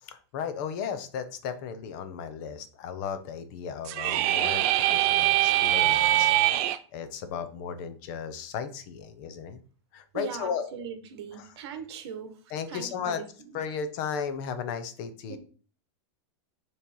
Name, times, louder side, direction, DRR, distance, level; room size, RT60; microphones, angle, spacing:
voice 1, 0.0-9.6 9.9-10.7 11.3-11.6 12.5-13.2 13.5-15.4, left 7 dB, 40° left, 10 dB, 0.8 m, -35 dB
sound 1, 3.9-6.8, right 14 dB, 35° right, 0.4 m, -23 dB
voice 2, 10.1-12.3 12.7-13.2 15.3-15.4, right 7 dB, 60° right, 8 dB, 1.3 m, -39 dB
7.2 x 3.2 x 5.4 m, 0.42 s
supercardioid pair, 175°, 15 cm